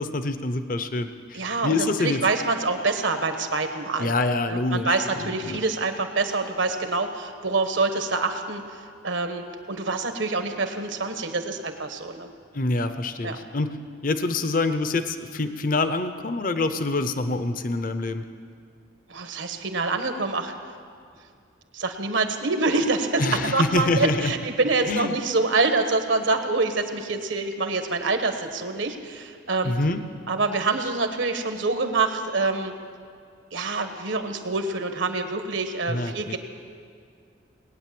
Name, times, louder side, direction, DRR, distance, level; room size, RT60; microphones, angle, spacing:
voice 1, 0.0-2.2 4.0-5.6 12.5-13.8 14.0-18.2 23.2-24.3 24.9-25.1 29.6-30.0 35.9-36.4, left 2 dB, 45° left, 10 dB, 0.7 m, -26 dB
voice 2, 1.3-4.1 4.5-12.3 13.2-13.4 19.1-20.5 21.7-29.7 30.3-32.7 33.5-36.4, right 3 dB, 75° right, 7 dB, 1.3 m, -26 dB
19.0 x 9.5 x 7.6 m, 2.2 s
head